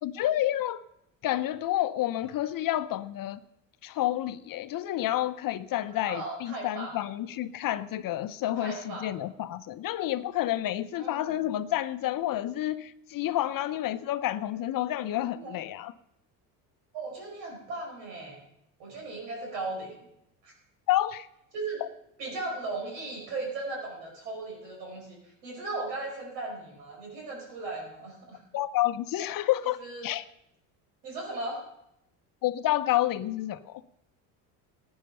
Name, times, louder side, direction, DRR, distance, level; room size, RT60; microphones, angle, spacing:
voice 1, 0.0-0.8 1.2-3.4 3.8-15.9 20.9-21.3 28.5-30.2 32.4-33.8, left 13 dB, 45° left, 0.7 m, -29 dB
voice 2, 6.0-7.0 8.5-9.1 10.9-11.4 15.4-15.5 16.9-18.4 18.8-19.9 20.4-20.5 21.5-21.8 22.2-28.4 29.4-30.1 31.0-31.6, right 2 dB, 80° right, 5.1 m, -37 dB
15.5 x 9.8 x 5.5 m
hypercardioid pair, 75°, 47 cm